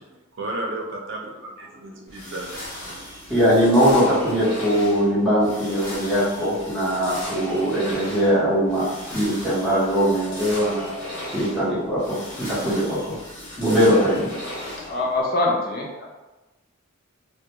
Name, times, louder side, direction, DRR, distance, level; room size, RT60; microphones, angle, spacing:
voice 1, 0.4-3.0, right 2 dB, 65° right, 0 dB, 0.5 m, -33 dB
sound 1, 2.1-15.2, left 1 dB, 65° left, 1.0 m, -37 dB
voice 2, 3.3-13.2 13.6-14.3, equal, ahead, -11 dB, 0.9 m, -21 dB
voice 3, 14.9-16.1, left 2 dB, 45° left, -1 dB, 0.5 m, -24 dB
2.3 x 2.2 x 2.9 m, 1.1 s
head